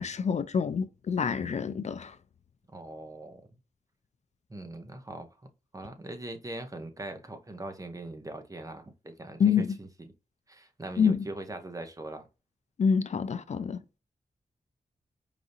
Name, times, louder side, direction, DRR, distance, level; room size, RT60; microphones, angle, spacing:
voice 1, 0.0-2.2 9.4-9.8 11.0-11.2 12.8-13.8, left 6 dB, 55° left, 0.4 m, -27 dB
voice 2, 2.7-3.4 4.5-5.3 5.7-10.1 10.5-12.3, right 2 dB, 25° right, 0.9 m, -41 dB
4.9 x 2.6 x 2.6 m
cardioid pair, 75°, 14 cm